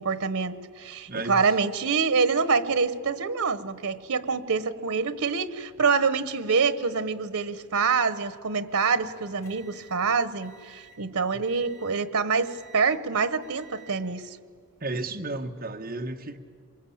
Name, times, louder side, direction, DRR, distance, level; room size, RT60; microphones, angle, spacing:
voice 1, 0.0-14.4, right 5 dB, 85° right, 1.1 m, -26 dB
voice 2, 1.1-1.4 14.8-16.4, right 2 dB, 40° right, 1.3 m, -33 dB
sound 1, 9.0-11.1 11.4-12.1 12.4-13.1 13.4-14.0 14.8-15.1, right 4 dB, 65° left, 5.2 m, -53 dB
26.5 x 22.5 x 8.7 m
head